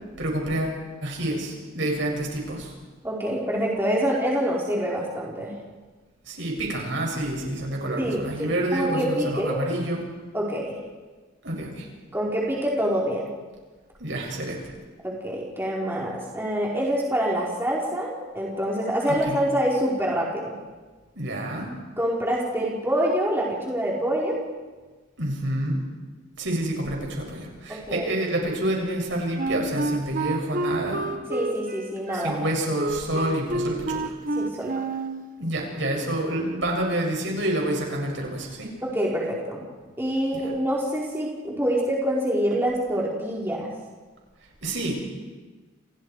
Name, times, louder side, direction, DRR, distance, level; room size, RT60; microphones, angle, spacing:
voice 1, 0.2-2.7 6.2-10.0 11.4-11.9 14.0-14.6 19.0-19.4 21.2-21.7 25.2-25.8 26.4-31.1 32.1-34.1 35.4-38.7 40.3-40.5 44.6-45.0, right 1 dB, 60° right, 0 dB, 7.3 m, -28 dB
voice 2, 3.0-5.5 8.0-9.6 10.3-10.8 12.1-13.3 15.0-20.5 22.0-24.4 27.7-28.1 31.3-32.4 34.4-34.8 38.8-39.6 40.0-43.7, equal, 10° right, -5 dB, 4.2 m, -26 dB
Wind instrument woodwind instrument, 29.4-35.2, right 2 dB, 40° right, 1.5 m, -29 dB
30.0 x 29.0 x 4.8 m, 1.3 s
head